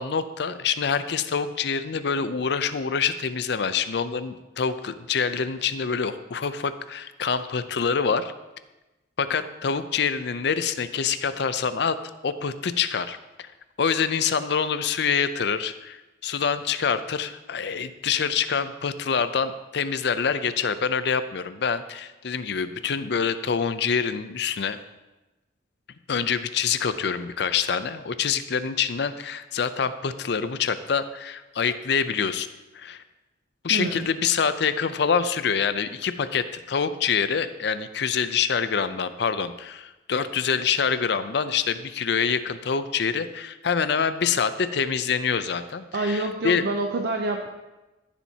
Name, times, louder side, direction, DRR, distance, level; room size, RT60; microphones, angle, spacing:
voice 1, 0.0-8.3 9.2-12.0 12.2-13.2 13.8-24.8 26.1-32.5 32.7-33.0 33.6-46.6, left 6 dB, 65° left, 12 dB, 0.5 m, -26 dB
voice 2, 33.7-34.1 45.9-47.5, right 2 dB, 65° right, 3 dB, 0.6 m, -27 dB
14.5 x 7.1 x 2.8 m, 1.1 s
head